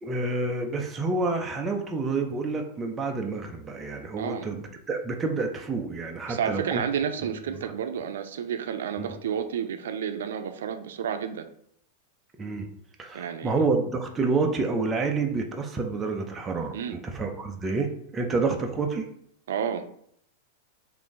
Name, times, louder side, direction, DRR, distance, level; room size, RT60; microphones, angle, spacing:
voice 1, 0.0-6.8 7.5-7.7 9.0-9.1 12.4-12.7 13.0-16.8 17.0-19.1, right 3 dB, 15° right, 2 dB, 0.4 m, -28 dB
voice 2, 4.2-4.5 6.3-11.5 13.1-13.6 16.7-17.0 19.5-19.9, right 8 dB, 90° right, 7 dB, 0.4 m, -31 dB
3.6 x 2.5 x 3.7 m, 0.69 s
supercardioid pair, 170°, 0 cm